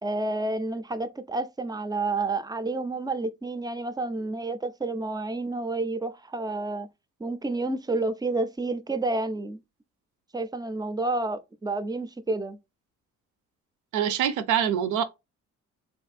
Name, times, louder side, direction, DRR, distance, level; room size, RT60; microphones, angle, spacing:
voice 1, 0.0-6.9 7.2-9.6 10.3-12.6, right 2 dB, 15° right, 0.3 m, -30 dB
voice 2, 13.9-15.0, right 9 dB, 80° right, 0.5 m, -24 dB
3.0 x 2.6 x 2.4 m
cardioid pair, 90°, 30 cm